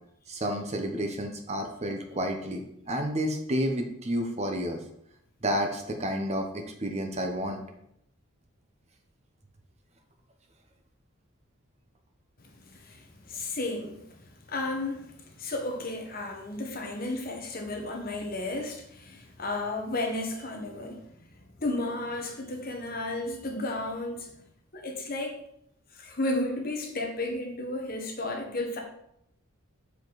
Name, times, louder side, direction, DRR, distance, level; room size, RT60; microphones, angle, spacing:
voice 1, 0.3-4.8 5.4-7.6, equal, 30° right, 4 dB, 0.8 m, -30 dB
voice 2, 12.4-21.1 21.6-24.3 24.7-25.4 25.9-28.8, left 2 dB, 45° left, 2 dB, 1.2 m, -33 dB
6.9 x 5.0 x 4.0 m, 0.75 s
head